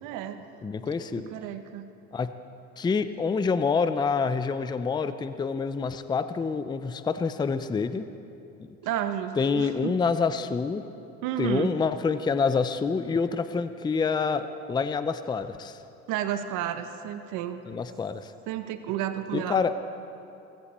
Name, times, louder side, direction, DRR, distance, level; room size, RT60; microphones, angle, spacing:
voice 1, 0.0-0.4 1.1-1.9 8.8-10.0 11.2-11.7 16.1-17.6 18.5-19.6, right 11 dB, 75° right, 8 dB, 1.1 m, -31 dB
voice 2, 0.6-1.3 2.1-2.3 2.8-8.0 9.4-10.8 11.4-15.8 17.7-18.3 19.3-19.7, left 5 dB, 15° left, 11 dB, 0.5 m, -27 dB
19.5 x 15.5 x 4.3 m, 2.8 s
cardioid pair, 110°, 32 cm